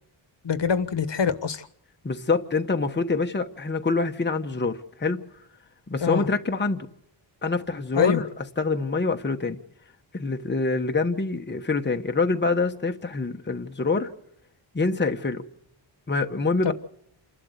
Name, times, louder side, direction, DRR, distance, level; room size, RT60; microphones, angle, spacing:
voice 1, 0.4-1.7 6.0-6.3 7.9-8.2 16.6-16.7, left 6 dB, 65° left, 1.4 m, -24 dB
voice 2, 2.0-5.2 5.9-6.9 7.4-8.3 8.6-9.6 10.1-14.1 14.7-15.4 16.1-16.7, left 3 dB, 25° left, 1.1 m, -25 dB
28.5 x 12.0 x 7.9 m
wide cardioid pair, 170°, 47 cm